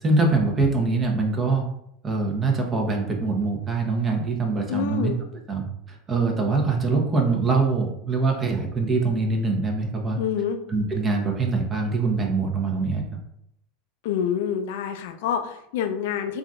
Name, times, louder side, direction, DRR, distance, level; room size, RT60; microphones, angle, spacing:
voice 1, 0.0-1.6 2.0-5.1 5.5-10.2 10.7-13.0, right 3 dB, 30° right, 1 dB, 0.8 m, -23 dB
voice 2, 4.7-5.2 10.2-10.6 14.0-16.4, left 8 dB, 70° left, 7 dB, 0.4 m, -27 dB
3.7 x 2.5 x 2.3 m, 0.76 s
hypercardioid pair, 95°, 0 cm